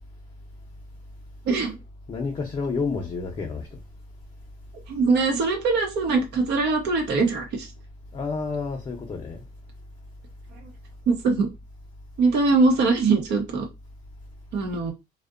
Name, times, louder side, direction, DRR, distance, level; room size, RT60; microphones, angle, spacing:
voice 1, 1.4-1.8 4.9-7.7 10.5-10.7 11.1-11.5 12.2-13.7 14.5-14.9, right 4 dB, 80° right, 0.7 m, -22 dB
voice 2, 2.1-3.8 8.1-9.4, left 4 dB, 30° left, 0.5 m, -30 dB
2.6 x 2.1 x 2.4 m
cardioid pair, 110°, 17 cm